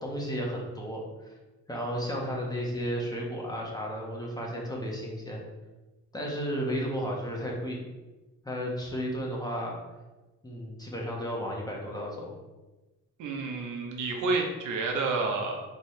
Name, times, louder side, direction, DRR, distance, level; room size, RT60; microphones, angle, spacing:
voice 1, 0.0-1.3 1.7-5.4 6.1-7.8 8.4-9.8 10.4-12.3, equal, 15° left, -2 dB, 1.2 m, -33 dB
voice 2, 13.2-15.6, right 3 dB, 80° right, 2 dB, 0.9 m, -29 dB
4.2 x 3.7 x 3.2 m, 1.1 s
cardioid pair, 90°, 30 cm